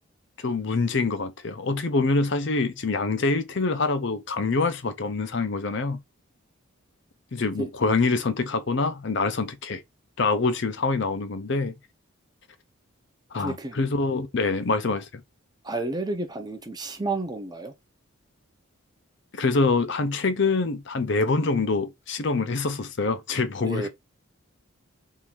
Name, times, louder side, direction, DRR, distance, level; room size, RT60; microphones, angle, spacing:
voice 1, 0.4-6.0 7.3-9.8 10.2-11.7 13.3-15.1 19.3-23.9, left 3 dB, 55° left, 0.6 m, -25 dB
voice 2, 7.4-7.7 13.4-13.8 14.9-15.0 15.6-17.7 23.6-23.9, right 2 dB, 20° right, 0.7 m, -31 dB
3.7 x 2.6 x 4.5 m
head